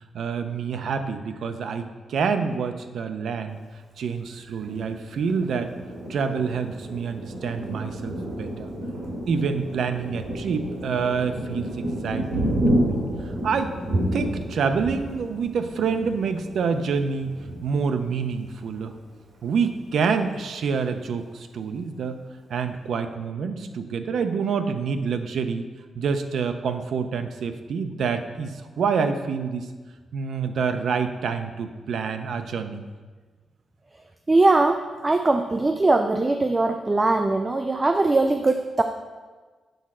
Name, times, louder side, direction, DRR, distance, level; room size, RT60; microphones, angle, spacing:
voice 1, 0.1-3.6 4.0-5.7 6.1-8.7 9.3-13.0 13.4-13.7 14.1-17.3 17.6-18.9 19.4-22.2 22.5-25.6 25.9-29.7 30.1-32.8, right 5 dB, 65° right, 8 dB, 0.6 m, -27 dB
Thunder, 4.6-18.9 19.4-19.6 19.9-20.5, right 1 dB, 85° right, 2.2 m, -30 dB
voice 2, 34.3-38.8, right 2 dB, 20° right, 6 dB, 0.3 m, -21 dB
7.9 x 4.2 x 6.2 m, 1.4 s
wide cardioid pair, 165°, 0 cm